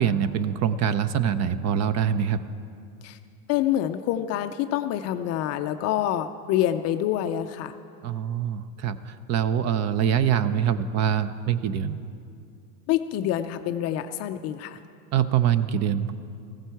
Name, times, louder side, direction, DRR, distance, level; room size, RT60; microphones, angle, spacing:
voice 1, 0.0-2.4 8.0-12.0 15.1-16.1, right 8 dB, 35° right, 14 dB, 0.6 m, -24 dB
voice 2, 3.5-7.7 12.9-14.8, left 11 dB, 35° left, 9 dB, 0.4 m, -26 dB
15.5 x 15.0 x 4.6 m, 2.4 s
hypercardioid pair, 110°, 47 cm